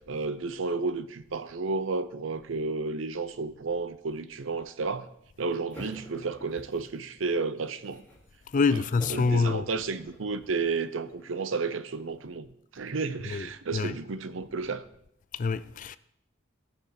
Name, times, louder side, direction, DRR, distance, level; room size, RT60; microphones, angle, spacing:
voice 1, 0.0-5.1 5.4-8.0 8.7-12.5 12.7-14.8, right 4 dB, 75° right, 0.7 m, -32 dB
sound 1, 5.7-7.2 7.6-8.3 9.0-12.3, left 1 dB, 10° left, 2.5 m, -48 dB
voice 2, 8.5-9.7 13.2-14.0 15.3-16.0, left 4 dB, 40° left, 0.4 m, -26 dB
17.0 x 6.0 x 4.3 m
head